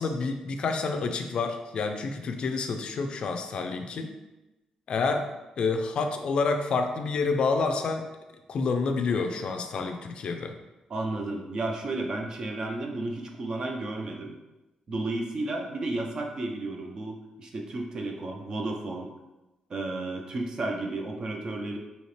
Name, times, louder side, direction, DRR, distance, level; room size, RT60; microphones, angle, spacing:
voice 1, 0.0-4.1 4.9-5.3 5.6-8.1 8.5-10.5, left 4 dB, 50° left, 5 dB, 0.4 m, -28 dB
voice 2, 10.9-14.3 14.9-19.1 19.7-21.8, right 2 dB, 35° right, 2 dB, 0.5 m, -32 dB
4.2 x 2.8 x 3.2 m, 1.0 s
wide cardioid pair, 165°, 2 cm